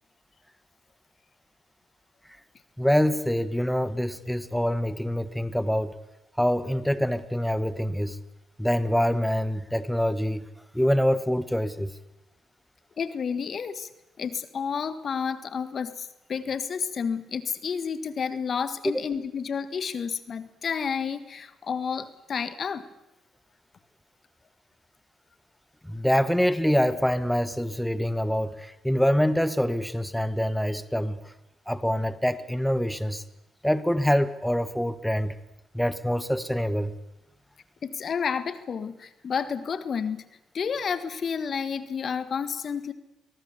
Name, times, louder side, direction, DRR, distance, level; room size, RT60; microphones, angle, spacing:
voice 1, 2.8-5.9 6.4-8.2 8.6-10.4 10.7-11.9 18.9-19.0 25.8-31.3 31.7-33.2 33.6-35.3 35.7-36.9, equal, 5° left, 14 dB, 1.4 m, -25 dB
voice 2, 13.0-13.9 14.2-22.9 37.8-40.3 40.5-42.9, left 6 dB, 50° left, 13 dB, 1.6 m, -30 dB
23.0 x 18.5 x 8.3 m, 0.90 s
hypercardioid pair, 50°, 0 cm